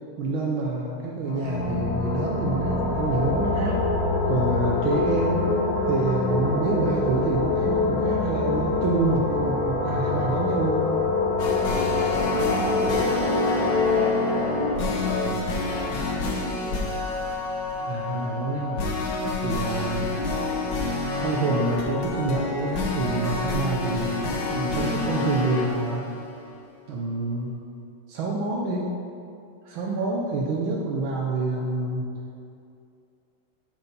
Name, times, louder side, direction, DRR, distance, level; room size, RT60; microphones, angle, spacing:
voice 1, 0.2-3.9 4.3-5.5 5.8-10.9 17.8-18.9 19.4-20.1 21.2-26.0 26.9-27.5 28.1-29.0 29.6-32.1, right 3 dB, 75° right, -2 dB, 1.5 m, -27 dB
sound 1, 1.2-16.8, left 3 dB, 85° left, 1.6 m, -26 dB
sound 2, 11.4-26.6, left 2 dB, 65° left, 1.6 m, -28 dB
voice 2, 11.6-15.1, right 1 dB, 50° right, -3 dB, 1.3 m, -37 dB
8.1 x 4.5 x 5.3 m, 2.5 s
omnidirectional pair, 2.3 m